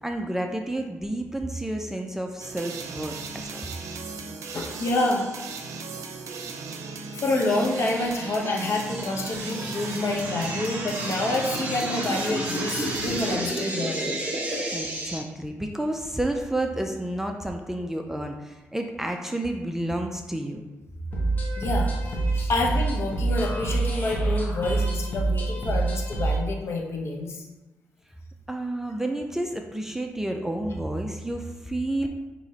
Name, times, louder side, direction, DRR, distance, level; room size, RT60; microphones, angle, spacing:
voice 1, 0.0-3.6 14.7-20.6 28.5-32.1, right 1 dB, 5° right, 3 dB, 0.4 m, -30 dB
sound 1, 2.4-13.4, right 4 dB, 80° right, 0.5 m, -36 dB
voice 2, 4.5-5.3 7.1-14.2 21.5-27.4, left 2 dB, 55° left, 0 dB, 0.9 m, -28 dB
sound 2, 7.4-15.2, right 1 dB, 25° right, 1.1 m, -32 dB
sound 3, 21.1-26.4, right 3 dB, 35° left, 1.1 m, -26 dB
6.2 x 2.9 x 2.8 m, 1.1 s
cardioid pair, 90°, 5 cm